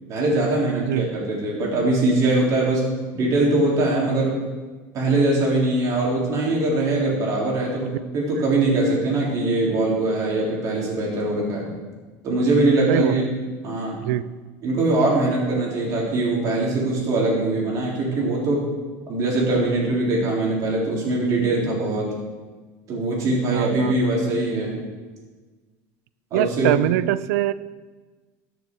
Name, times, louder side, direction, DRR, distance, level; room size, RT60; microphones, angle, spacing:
voice 1, 0.1-2.8 3.1-4.4 4.9-11.7 12.2-13.3 13.6-14.0 14.6-18.7 19.1-22.1 22.9-24.8 26.3-26.8, right 2 dB, 40° right, -4 dB, 3.7 m, -22 dB
voice 2, 12.9-13.3 14.0-14.2 23.5-24.1 26.3-27.5, right 15 dB, 85° right, 17 dB, 0.4 m, -23 dB
13.5 x 6.8 x 4.8 m, 1.3 s
cardioid pair, 145°, 8 cm